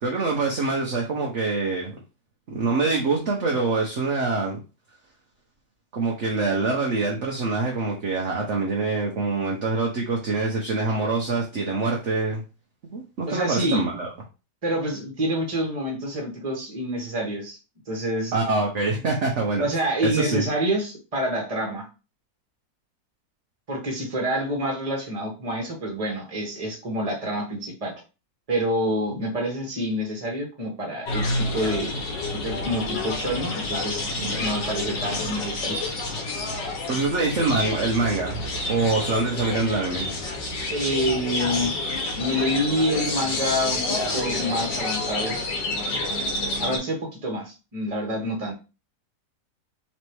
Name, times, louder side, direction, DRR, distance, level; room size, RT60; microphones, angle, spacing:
voice 1, 0.0-1.9 2.5-4.6 5.9-12.4 12.9-14.1 18.3-19.6 20.0-20.5 36.9-40.1, right 3 dB, 50° right, -1 dB, 1.0 m, -25 dB
voice 2, 13.3-13.8 14.6-17.6 17.9-18.4 19.6-21.9 23.7-27.9 28.5-32.0 32.3-35.8 40.7-41.7 42.1-43.8 44.1-45.4 46.6-48.5, equal, 20° right, 0 dB, 1.3 m, -27 dB
sound 1, 31.0-46.8, left 2 dB, 90° left, 1.8 m, -29 dB
4.1 x 3.3 x 3.1 m, 0.31 s
omnidirectional pair, 1.8 m